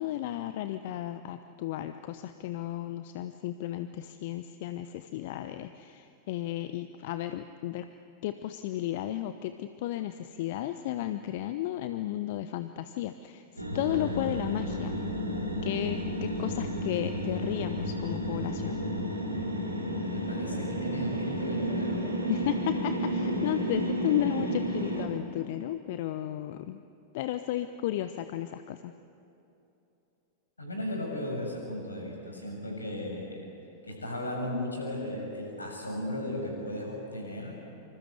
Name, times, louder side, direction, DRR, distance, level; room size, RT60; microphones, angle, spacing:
voice 1, 0.0-7.9 8.2-14.9 15.6-18.8 22.3-26.8 27.1-28.9, left 13 dB, 50° left, 10 dB, 0.9 m, -34 dB
sound 1, 13.6-25.1, equal, 85° right, 3.4 m, -32 dB
voice 2, 20.1-22.0 30.6-33.4 33.8-37.5, left 1 dB, 80° left, 1 dB, 7.2 m, -36 dB
26.0 x 26.0 x 8.2 m, 2.8 s
figure-of-eight pair, 90°, 0 cm